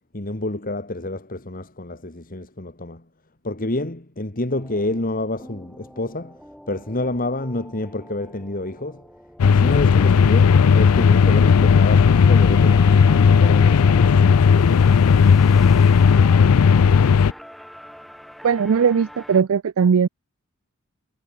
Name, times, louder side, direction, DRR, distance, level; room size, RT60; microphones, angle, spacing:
voice 1, 0.1-3.0 3.4-6.4 6.7-9.0 9.4-15.4, left 2 dB, 40° left, 1.9 m, -29 dB
sound 1, 4.5-19.4, equal, ahead, 6.6 m, -45 dB
sound 2, 9.4-17.3, left 6 dB, 75° left, 0.4 m, -14 dB
Wind instrument woodwind instrument, 10.5-15.2, left 3 dB, 20° left, 2.8 m, -41 dB
voice 2, 18.4-20.1, right 6 dB, 65° right, 0.4 m, -18 dB
head